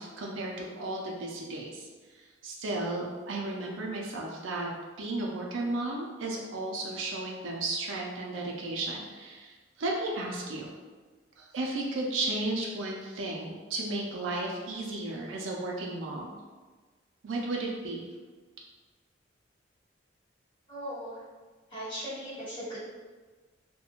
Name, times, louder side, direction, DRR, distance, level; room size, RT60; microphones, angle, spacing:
voice 1, 0.0-4.7 5.0-10.7 11.4-16.4 17.2-18.1, right 2 dB, 90° right, -2 dB, 0.4 m, -34 dB
voice 2, 20.7-21.2 21.7-22.8, equal, 25° left, -11 dB, 1.2 m, -38 dB
2.4 x 2.1 x 2.9 m, 1.4 s
head